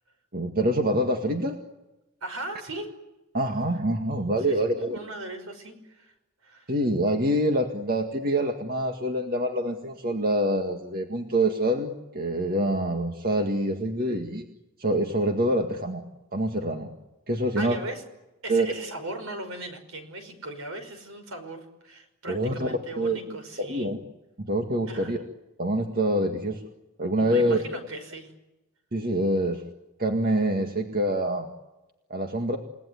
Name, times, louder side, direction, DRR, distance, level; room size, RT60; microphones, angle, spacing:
voice 1, 0.3-1.6 3.3-5.0 6.7-14.5 14.8-16.0 16.3-16.9 17.3-17.8 18.5-18.7 22.3-24.0 24.4-25.2 25.6-26.6 27.0-27.6 28.9-29.6 30.0-31.5 32.1-32.6, right 1 dB, 45° right, 4 dB, 2.0 m, -26 dB
voice 2, 2.2-2.9 4.5-6.1 6.4-6.7 17.6-18.0 18.4-23.9 24.9-25.2 27.2-28.3, right 2 dB, 70° right, 7 dB, 5.6 m, -38 dB
29.5 x 18.5 x 9.6 m, 1.0 s
head